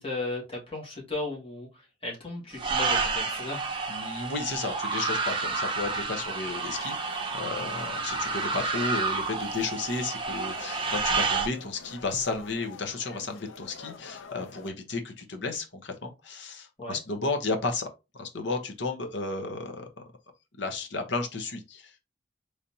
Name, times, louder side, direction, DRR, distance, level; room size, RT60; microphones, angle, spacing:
voice 1, 0.0-1.7 2.0-3.6 16.8-17.0, left 2 dB, 30° left, 1.7 m, -35 dB
sound 1, 2.6-11.5, right 4 dB, 25° right, 0.6 m, -30 dB
voice 2, 3.9-17.9 18.1-19.9 20.6-21.9, left 3 dB, 65° left, 0.9 m, -33 dB
sound 2, 6.5-14.7, left 4 dB, 85° left, 0.6 m, -48 dB
4.0 x 3.3 x 2.7 m
head